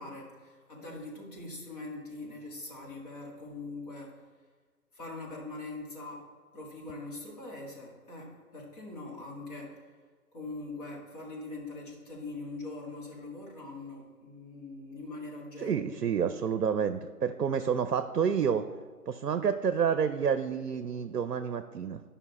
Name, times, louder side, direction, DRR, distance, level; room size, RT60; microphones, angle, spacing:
voice 1, 0.0-4.3 4.9-6.3 6.5-9.8 10.3-15.9, left 2 dB, 25° left, -3 dB, 1.8 m, -42 dB
voice 2, 15.6-18.7 19.1-22.0, right 7 dB, 75° right, 10 dB, 0.7 m, -29 dB
12.0 x 5.6 x 4.1 m, 1.5 s
figure-of-eight pair, 150°, 47 cm